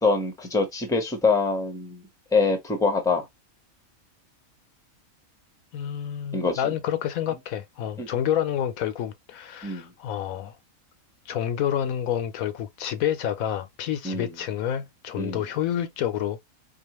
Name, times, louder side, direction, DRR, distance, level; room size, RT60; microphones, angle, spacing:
voice 1, 0.0-2.0 2.3-3.3 6.3-6.7 8.0-8.1 9.6-9.9 14.0-14.3 15.2-15.4, left 4 dB, 5° left, 0.8 m, -24 dB
voice 2, 5.7-10.6 11.3-16.4, left 10 dB, 75° left, 1.0 m, -28 dB
4.7 x 2.4 x 2.9 m
omnidirectional pair, 1.5 m